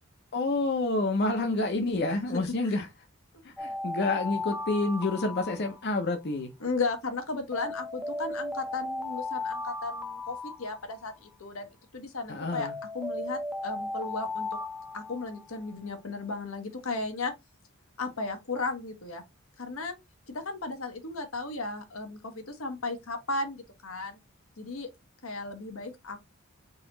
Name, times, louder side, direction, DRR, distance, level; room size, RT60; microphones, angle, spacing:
voice 1, 0.3-2.9 3.4-6.5 12.3-12.8, left 2 dB, 55° left, 0.7 m, -28 dB
voice 2, 2.3-2.8 3.3-3.4 6.6-12.7 12.9-14.5 14.9-17.3 18.0-19.2 19.6-19.9 20.3-24.2 24.6-24.9 25.2-26.3, left 3 dB, 85° left, 1.1 m, -35 dB
Alarm, 3.6-6.2 7.5-11.2 12.5-15.7, left 2 dB, ahead, 0.5 m, -36 dB
4.0 x 2.9 x 3.9 m
head